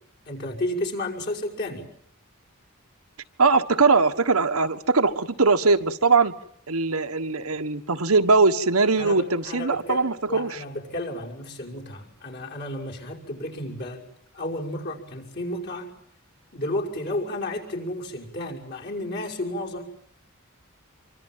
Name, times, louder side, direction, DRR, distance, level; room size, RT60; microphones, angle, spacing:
voice 1, 0.3-1.9 9.0-14.1 14.3-15.9 16.5-19.8, left 1 dB, 50° left, 5.6 m, -32 dB
voice 2, 3.4-6.3 6.7-10.6, right 4 dB, 85° right, 1.5 m, -21 dB
26.0 x 24.5 x 7.5 m
head